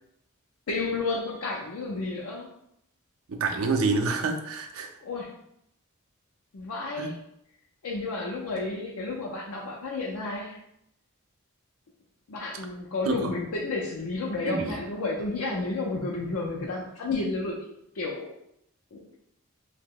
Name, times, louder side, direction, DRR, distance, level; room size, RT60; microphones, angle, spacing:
voice 1, 0.7-2.5 5.0-5.4 6.5-7.2 7.8-10.6 12.3-17.7 17.9-18.3 18.9-19.1, left 3 dB, 85° left, -2 dB, 0.5 m, -31 dB
voice 2, 3.3-4.9 7.0-7.1 13.1-13.3 14.5-14.7, right 4 dB, 75° right, 4 dB, 0.4 m, -27 dB
2.8 x 2.1 x 3.6 m, 0.75 s
head